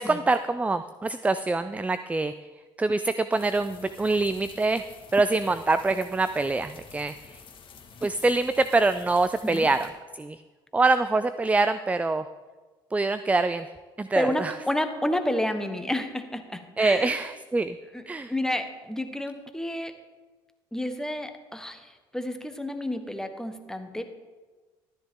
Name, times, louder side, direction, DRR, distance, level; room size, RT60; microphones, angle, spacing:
voice 1, 0.0-2.3 2.8-4.8 5.1-7.4 8.0-9.9 10.1-10.4 10.7-12.3 12.9-13.7 14.0-14.6 16.8-17.8 18.1-18.3, right 3 dB, 10° right, 12 dB, 0.4 m, -25 dB
sound 1, 3.3-9.9, left 6 dB, 50° left, 1.7 m, -49 dB
voice 2, 14.1-17.2 17.9-18.0 18.3-19.9 20.7-24.1, left 1 dB, 5° left, 7 dB, 1.3 m, -30 dB
13.0 x 10.5 x 3.7 m, 1.3 s
hypercardioid pair, 70°, 11 cm